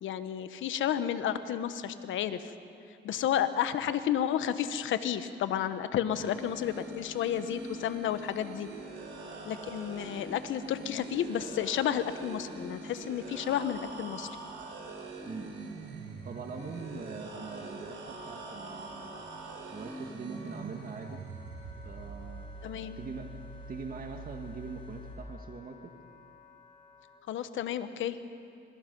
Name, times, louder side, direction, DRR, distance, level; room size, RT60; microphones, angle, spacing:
voice 1, 0.0-2.5 3.0-8.7 9.4-14.3 22.6-23.0 27.3-28.2, left 10 dB, 80° left, 11 dB, 1.1 m, -31 dB
sound 1, 6.1-25.1, right 3 dB, 70° right, 4.7 m, -44 dB
voice 2, 15.2-15.7 16.2-19.1 19.7-21.2 21.8-22.5 22.9-23.3 23.7-25.9, right 4 dB, 45° right, 4 dB, 1.6 m, -42 dB
Wind instrument woodwind instrument, 15.8-27.2, left 3 dB, 35° left, 3.0 m, -56 dB
27.0 x 23.0 x 5.4 m, 2.6 s
cardioid pair, 90°, 20 cm